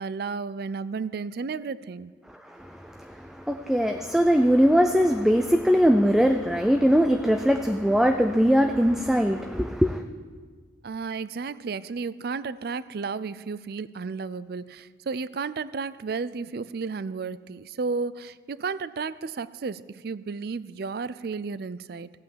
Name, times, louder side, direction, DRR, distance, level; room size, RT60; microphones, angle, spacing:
voice 1, 0.0-2.1 10.8-22.1, right 4 dB, 60° right, 16 dB, 0.4 m, -33 dB
voice 2, 2.4-10.0, equal, ahead, 6 dB, 0.4 m, -21 dB
15.5 x 8.7 x 7.3 m, 1.5 s
head